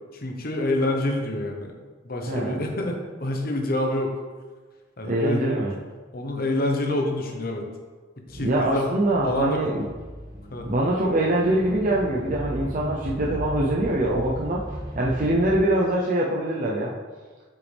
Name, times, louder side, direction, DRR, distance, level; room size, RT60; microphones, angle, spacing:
voice 1, 0.1-1.7 2.0-4.1 5.0-5.5 6.1-7.7 8.3-8.9 9.2-9.6 10.5-10.7, left 1 dB, 50° left, 2 dB, 1.1 m, -27 dB
voice 2, 2.3-2.6 5.0-5.7 8.4-9.8 10.7-14.6 15.0-16.9, right 1 dB, 45° right, -3 dB, 0.7 m, -23 dB
sound 1, 8.3-15.6, equal, 25° right, 2.2 m, -36 dB
8.1 x 5.8 x 3.5 m, 1.4 s
head